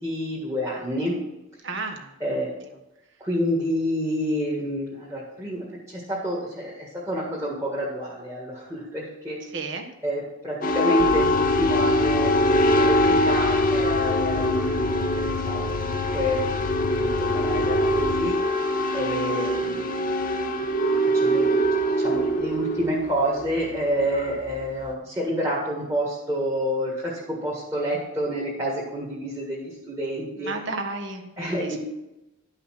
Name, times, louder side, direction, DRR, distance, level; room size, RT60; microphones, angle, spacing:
voice 1, 0.0-1.1 2.2-2.5 3.2-9.4 10.0-13.0 13.2-16.5 16.8-18.7 18.9-20.1 20.9-27.1 27.4-30.5 31.4-31.8, equal, 15° right, -7 dB, 1.7 m, -28 dB
voice 2, 1.6-2.4 9.5-9.9 30.4-31.8, right 3 dB, 60° right, 4 dB, 1.3 m, -33 dB
sound 1, 10.6-24.9, equal, 40° left, 0.8 m, -23 dB
sound 2, 11.0-18.3, left 5 dB, 75° left, 0.5 m, -33 dB
11.5 x 5.6 x 5.8 m, 0.97 s
head